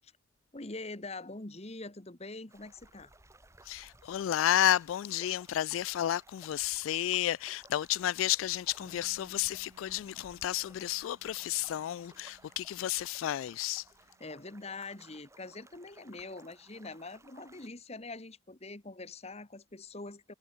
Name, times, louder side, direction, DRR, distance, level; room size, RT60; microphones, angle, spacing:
voice 1, 0.5-3.1 14.2-20.3, left 3 dB, 30° left, 1.5 m, -44 dB
sound 1, 2.5-17.7, right 2 dB, 15° right, 3.4 m, -60 dB
voice 2, 3.7-13.8, left 12 dB, 90° left, 0.3 m, -31 dB
Bass guitar, 8.8-15.0, right 1 dB, 85° right, 3.5 m, -65 dB
head